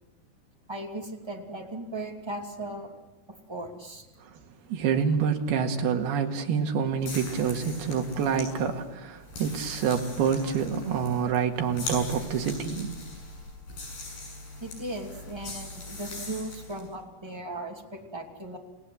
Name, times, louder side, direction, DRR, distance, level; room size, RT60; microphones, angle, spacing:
voice 1, 0.7-2.9 3.5-4.1 14.6-18.6, right 2 dB, 10° right, 1 dB, 1.7 m, -37 dB
voice 2, 4.7-13.0, right 7 dB, 70° right, 3 dB, 3.8 m, -27 dB
sound 1, 7.0-16.9, left 2 dB, 70° left, 9.2 m, -41 dB
29.0 x 18.5 x 8.0 m, 1.0 s
omnidirectional pair, 4.9 m